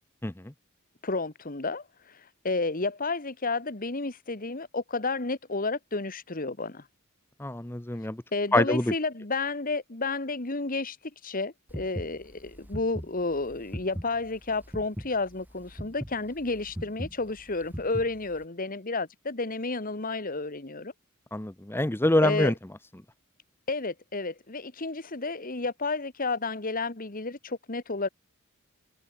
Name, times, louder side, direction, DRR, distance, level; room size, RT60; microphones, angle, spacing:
voice 1, 1.0-1.8 2.4-6.8 8.3-11.0 11.2-20.9 22.2-22.5 23.7-28.1, left 3 dB, 40° left, 1.7 m, -31 dB
voice 2, 7.4-8.2 8.5-8.9 21.3-22.5, left 1 dB, 10° left, 0.8 m, -25 dB
sound 1, 11.7-18.4, equal, 10° right, 3.5 m, -39 dB
head